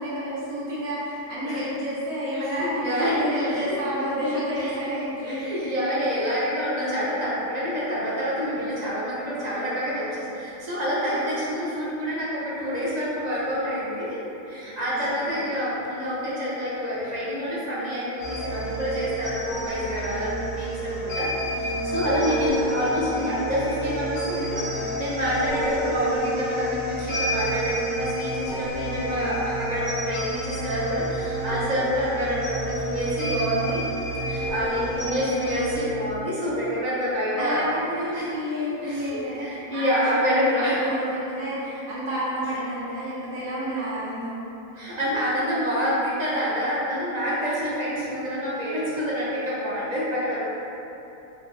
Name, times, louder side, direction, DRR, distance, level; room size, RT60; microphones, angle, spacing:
voice 1, 0.0-5.7 10.8-11.3 14.9-15.5 22.1-22.4 33.2-33.6 34.7-34.8 35.1-35.2 37.3-44.4, equal, 75° right, -8 dB, 1.3 m, -30 dB
voice 2, 2.6-3.8 4.6-4.7 5.2-14.2 14.4-33.8 34.3-37.7 38.1-38.3 38.8-40.8 44.7-50.4, equal, 50° right, -8 dB, 0.5 m, -27 dB
sound 1, 18.2-35.8, right 1 dB, 80° left, 1.6 m, -29 dB
4.6 x 2.0 x 3.1 m, 3.0 s
omnidirectional pair, 1.5 m